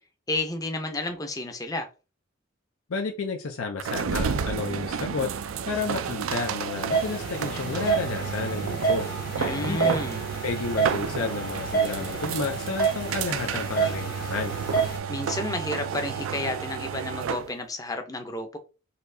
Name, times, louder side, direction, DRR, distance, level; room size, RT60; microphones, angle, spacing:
voice 1, 0.3-1.9 9.4-10.2 15.1-18.6, left 2 dB, 15° left, 0.5 m, -31 dB
voice 2, 2.9-5.3 5.7-9.1 9.4-10.0 10.4-14.6, left 4 dB, 85° left, 0.5 m, -31 dB
sound 1, 3.8-17.5, right 7 dB, 75° right, 0.4 m, -31 dB
sound 2, 6.9-15.0, right 5 dB, 45° left, 1.0 m, -29 dB
4.2 x 2.7 x 2.6 m
head